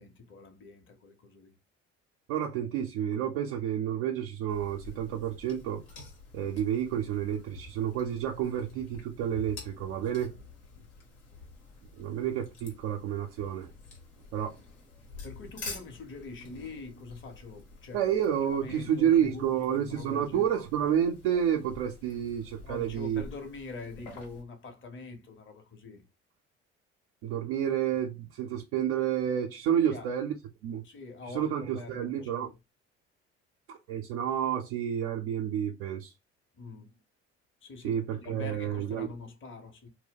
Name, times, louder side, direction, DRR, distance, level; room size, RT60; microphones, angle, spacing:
voice 1, 0.0-1.6 9.7-10.5 10.7-10.9 15.2-18.0 18.5-20.6 22.6-26.0 29.8-30.1 30.8-32.5 36.5-37.0 37.6-39.9, left 3 dB, 35° left, 0.9 m, -45 dB
voice 2, 2.3-5.8 6.3-10.3 12.0-13.7 14.3-14.6 17.9-23.2 27.2-30.3 30.6-30.8 31.3-32.5 33.7-36.1 37.8-39.1, right 9 dB, 75° right, 0.5 m, -30 dB
sound 1, 4.5-24.4, left 3 dB, 85° left, 1.1 m, -49 dB
2.2 x 2.1 x 3.6 m
hypercardioid pair, 55°, 34 cm